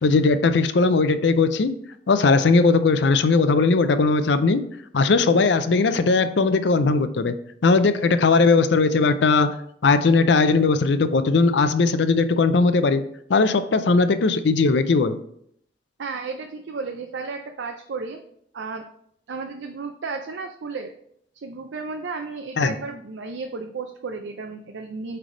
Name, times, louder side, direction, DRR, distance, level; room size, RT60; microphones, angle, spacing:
voice 1, 0.0-1.7 2.1-4.6 4.9-7.3 7.6-9.6 9.8-13.0 13.3-15.2 22.6-22.7, left 4 dB, 75° left, 11 dB, 0.5 m, -19 dB
voice 2, 16.0-18.2 18.5-18.8 19.3-20.9 21.4-25.2, right 4 dB, 80° right, 5 dB, 0.5 m, -33 dB
8.9 x 3.4 x 3.8 m, 0.69 s
head